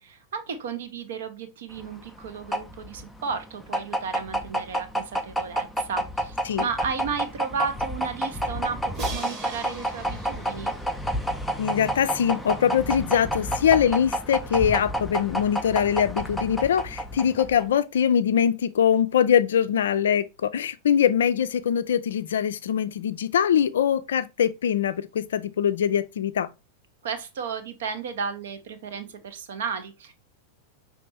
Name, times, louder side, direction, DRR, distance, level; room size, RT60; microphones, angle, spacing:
voice 1, 0.0-10.7 27.0-30.1, right 6 dB, 60° right, 0.8 m, -33 dB
sound 1, 1.7-17.8, right 1 dB, 5° left, 0.6 m, -30 dB
Crash cymbal, 8.9-11.9, right 4 dB, 30° right, 1.1 m, -41 dB
voice 2, 11.6-26.5, left 8 dB, 65° left, 0.3 m, -23 dB
5.1 x 3.2 x 3.3 m
figure-of-eight pair, 90°, 0 cm